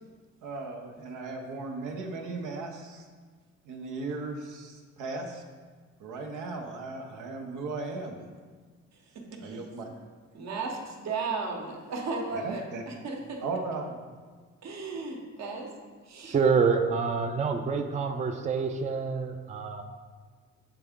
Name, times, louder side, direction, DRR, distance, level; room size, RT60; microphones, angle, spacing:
voice 1, 0.4-3.1 3.7-5.4 6.0-8.3 9.4-9.9 12.3-12.8 13.4-14.0, right 3 dB, 85° right, 2 dB, 0.8 m, -36 dB
voice 2, 8.9-10.0 10.3-13.4 14.6-15.7 16.0-16.3, right 4 dB, 60° right, 2 dB, 1.0 m, -35 dB
voice 3, 16.2-19.8, right 5 dB, 25° right, 5 dB, 0.4 m, -27 dB
7.6 x 3.4 x 3.6 m, 1.5 s
cardioid pair, 90°, 30 cm